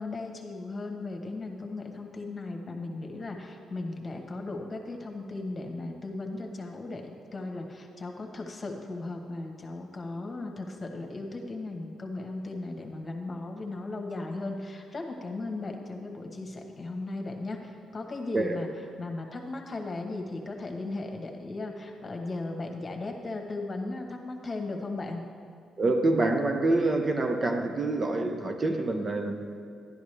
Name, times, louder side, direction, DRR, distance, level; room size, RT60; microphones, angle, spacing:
voice 1, 0.0-18.7 19.0-25.2, left 2 dB, 30° left, 2 dB, 1.3 m, -36 dB
voice 2, 25.8-29.6, right 2 dB, 30° right, 4 dB, 0.8 m, -26 dB
11.5 x 10.5 x 3.4 m, 2.5 s
cardioid pair, 90°, 0 cm